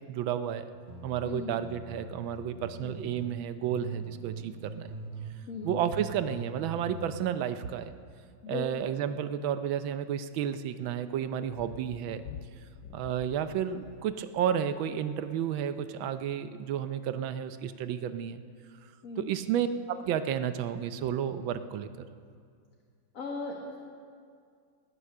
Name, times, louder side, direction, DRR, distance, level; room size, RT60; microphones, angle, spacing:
voice 1, 0.1-0.7 1.0-4.9 5.6-7.9 8.5-12.2 12.9-18.4 19.2-22.1, right 9 dB, 85° right, 11 dB, 1.5 m, -32 dB
sound 1, 0.7-3.3 3.6-5.4 5.6-7.2, right 3 dB, 30° right, 1.2 m, -43 dB
voice 2, 1.2-1.5 2.8-3.0 5.5-5.8 8.4-8.9 19.0-19.3 23.1-23.8, left 4 dB, 50° left, -1 dB, 1.6 m, -38 dB
Thunder, 11.4-15.3 16.6-16.7, left 9 dB, 80° left, 0.8 m, -48 dB
18.5 x 9.6 x 6.6 m, 2.2 s
omnidirectional pair, 2.1 m